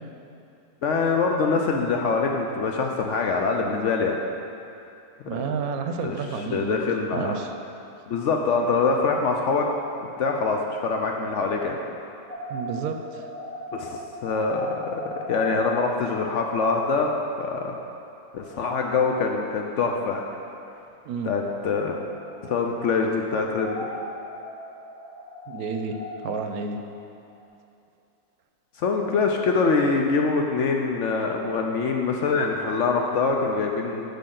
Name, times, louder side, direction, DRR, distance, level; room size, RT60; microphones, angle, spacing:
voice 1, 0.8-4.2 6.0-6.2 6.5-7.3 8.1-9.7 10.0-11.8 13.7-17.1 17.4-17.8 18.3-20.2 21.2-22.0 22.4-23.8 28.8-34.0, left 4 dB, 65° left, 2 dB, 0.8 m, -24 dB
voice 2, 5.3-6.8 7.1-7.5 12.5-13.3 21.1-21.3 25.5-26.8, right 5 dB, 80° right, 6 dB, 1.0 m, -30 dB
sound 1, 12.3-17.7 17.9-18.0 18.4-20.7 21.4-23.2 23.5-27.4, left 1 dB, 5° left, 1.1 m, -39 dB
10.5 x 5.4 x 3.8 m, 2.7 s
omnidirectional pair, 1.6 m